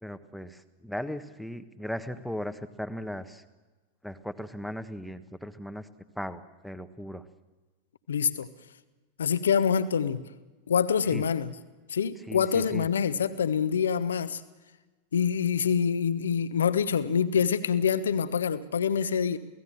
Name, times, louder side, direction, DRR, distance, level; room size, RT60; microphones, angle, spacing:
voice 1, 0.0-3.4 4.0-5.9 6.1-7.2 11.1-11.2 12.3-12.9, equal, ahead, 11 dB, 1.3 m, -37 dB
voice 2, 8.1-8.5 9.2-10.2 10.7-11.5 11.9-14.4 15.1-19.4, left 7 dB, 65° left, 13 dB, 1.2 m, -26 dB
29.0 x 18.0 x 7.5 m, 1.2 s
figure-of-eight pair, 90°, 0 cm